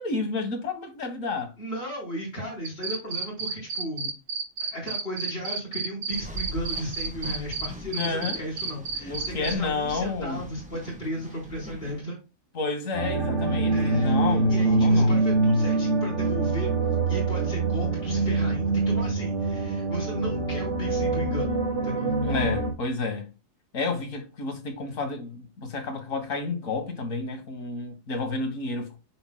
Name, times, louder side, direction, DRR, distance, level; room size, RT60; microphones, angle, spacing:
voice 1, 0.0-1.5 7.8-8.4 9.0-10.4 12.5-15.2 22.2-23.3 23.7-29.0, left 3 dB, 80° left, 1.8 m, -30 dB
voice 2, 1.6-4.1 4.6-12.2 13.7-14.2 14.5-16.7 17.1-22.1, equal, 50° left, 4.4 m, -35 dB
sound 1, 2.6-7.7 7.9-9.5, right 4 dB, 50° right, 1.2 m, -30 dB
sound 2, 6.1-12.0, equal, 5° right, 1.2 m, -41 dB
sound 3, 12.9-22.7, right 3 dB, 75° right, 2.6 m, -24 dB
8.6 x 5.9 x 2.2 m
omnidirectional pair, 1.4 m